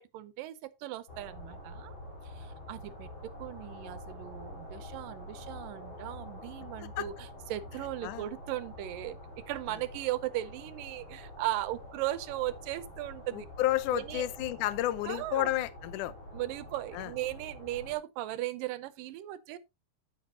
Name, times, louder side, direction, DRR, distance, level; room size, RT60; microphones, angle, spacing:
voice 1, 0.0-2.0 2.2-13.5 13.9-14.3 15.0-15.5 16.3-19.6, right 15 dB, 80° right, 2.3 m, -37 dB
sound 1, 1.1-18.0, left 1 dB, 35° left, 4.6 m, -47 dB
voice 2, 13.3-16.1 16.9-17.1, left 14 dB, 75° left, 2.1 m, -31 dB
9.9 x 9.0 x 2.8 m
omnidirectional pair, 4.0 m